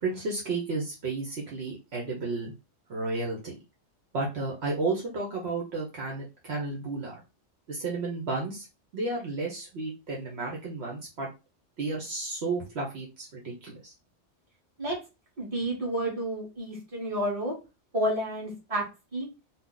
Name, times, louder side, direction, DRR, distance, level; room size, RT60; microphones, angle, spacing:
voice 1, 0.0-2.5 2.9-3.5 4.1-7.2 7.7-8.7 8.9-11.3 11.8-13.9, right 3 dB, 65° right, -2 dB, 1.0 m, -32 dB
voice 2, 15.4-17.5 17.9-18.8 19.1-19.3, right 1 dB, 30° right, -3 dB, 1.3 m, -30 dB
2.8 x 2.0 x 3.7 m, 0.29 s
omnidirectional pair, 1.2 m